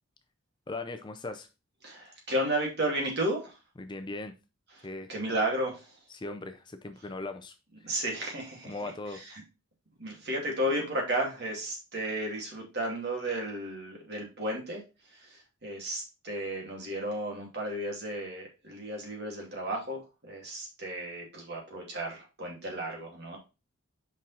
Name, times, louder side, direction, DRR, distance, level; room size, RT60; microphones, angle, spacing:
voice 1, 0.7-1.5 3.8-4.3 4.8-5.1 6.1-7.9 8.6-9.4, left 2 dB, 20° left, 7 dB, 0.5 m, -39 dB
voice 2, 1.8-3.5 4.8-6.0 7.8-8.7 10.0-14.8 15.1-23.4, right 1 dB, 50° right, 0 dB, 2.5 m, -33 dB
5.4 x 5.1 x 4.2 m, 0.29 s
head